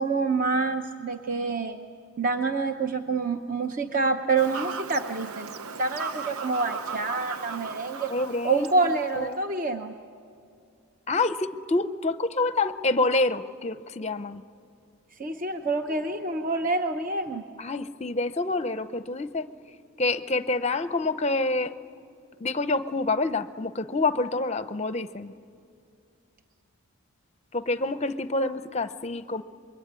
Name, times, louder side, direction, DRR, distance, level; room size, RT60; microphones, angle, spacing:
voice 1, 0.0-1.8 2.2-5.5 5.7-8.1 8.4-10.0 15.2-17.4, right 3 dB, 35° right, 6 dB, 0.8 m, -27 dB
Fowl / Bird vocalization bird call bird song, 4.4-9.4, right 5 dB, 75° right, 0.7 m, -37 dB
voice 2, 8.1-9.4 11.1-14.4 17.6-19.5 20.0-21.7 22.4-25.3 27.5-29.4, left 2 dB, 30° left, 12 dB, 0.6 m, -27 dB
25.5 x 22.5 x 9.6 m, 2.4 s
head